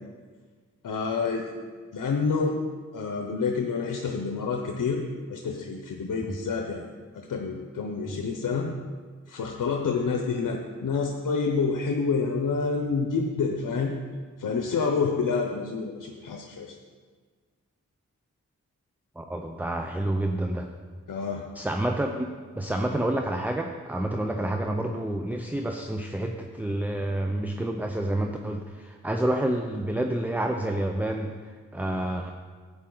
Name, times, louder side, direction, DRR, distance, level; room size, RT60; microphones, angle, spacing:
voice 1, 0.8-1.5 1.9-2.6 2.9-5.0 5.3-6.8 7.1-8.7 9.3-13.9 14.4-16.7 21.1-21.4, left 5 dB, 85° left, 2 dB, 0.8 m, -28 dB
voice 2, 19.2-20.7 21.5-32.3, right 1 dB, 5° right, 4 dB, 0.7 m, -29 dB
11.5 x 8.6 x 3.9 m, 1.5 s
cardioid pair, 50°, 31 cm